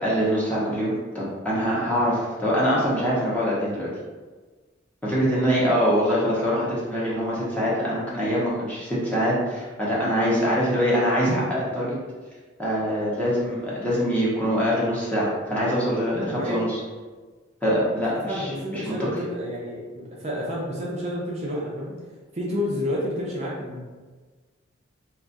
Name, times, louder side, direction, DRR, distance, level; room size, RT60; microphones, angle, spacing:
voice 1, 0.0-3.9 5.0-12.0 12.6-16.8 17.6-18.9, equal, 5° left, -8 dB, 0.7 m, -24 dB
voice 2, 16.1-16.6 18.2-22.0 22.3-23.8, left 1 dB, 35° right, -5 dB, 0.5 m, -30 dB
2.4 x 2.3 x 3.8 m, 1.4 s
head